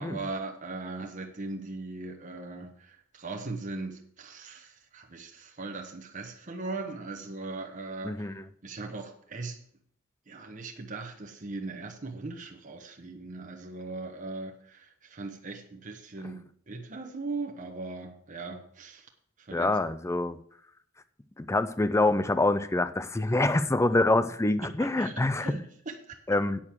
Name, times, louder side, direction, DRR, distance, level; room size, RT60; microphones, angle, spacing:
voice 1, 0.0-9.6 10.3-19.1 19.4-19.8 23.8-23.9 24.6-26.2, right 3 dB, 40° right, 3 dB, 1.1 m, -39 dB
voice 2, 8.0-8.4 19.5-20.4 21.4-25.6 26.3-26.6, left 2 dB, 15° left, 13 dB, 0.5 m, -26 dB
8.8 x 6.4 x 7.3 m, 0.64 s
head